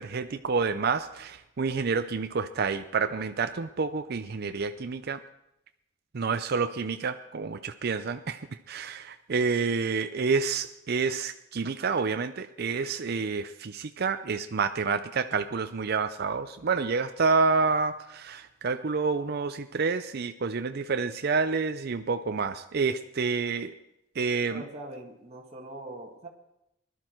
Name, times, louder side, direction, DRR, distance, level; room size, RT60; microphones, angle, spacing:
voice 1, 0.0-5.2 6.1-23.7 24.2-24.6, right 4 dB, 55° right, 9 dB, 0.5 m, -28 dB
voice 2, 24.5-26.3, right 1 dB, 35° right, 0 dB, 1.8 m, -42 dB
20.0 x 12.0 x 4.5 m, 0.83 s
head